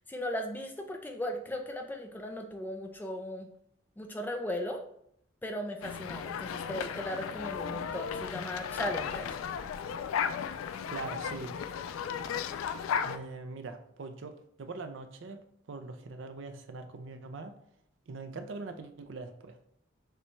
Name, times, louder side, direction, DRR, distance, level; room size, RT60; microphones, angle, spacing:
voice 1, 0.1-3.5 4.0-4.8 5.4-9.3, left 1 dB, 10° left, 3 dB, 0.4 m, -37 dB
sound 1, 5.8-13.2, left 7 dB, 85° left, 0.3 m, -35 dB
voice 2, 10.9-11.5 13.0-17.5 18.1-19.6, right 3 dB, 65° right, 8 dB, 0.5 m, -42 dB
6.7 x 2.2 x 3.1 m, 0.72 s
head